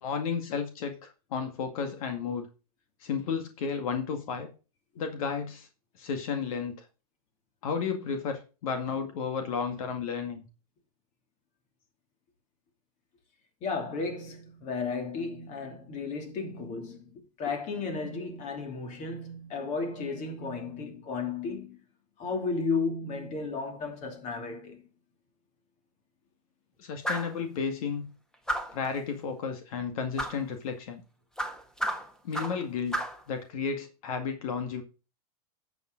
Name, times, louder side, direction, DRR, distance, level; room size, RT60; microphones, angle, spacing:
voice 1, 0.0-2.5 3.0-4.5 5.0-5.7 6.0-6.8 7.6-10.5 26.8-28.1 28.7-31.0 32.2-34.8, left 6 dB, 70° left, 2.0 m, -33 dB
voice 2, 13.6-21.8 22.2-24.8, left 4 dB, 40° left, 2.9 m, -34 dB
sound 1, 27.0-27.4 28.5-28.9 30.2-30.4 31.4-32.6 32.9-33.2, equal, 5° left, 1.3 m, -32 dB
11.0 x 7.0 x 3.9 m
supercardioid pair, 130°, 19 cm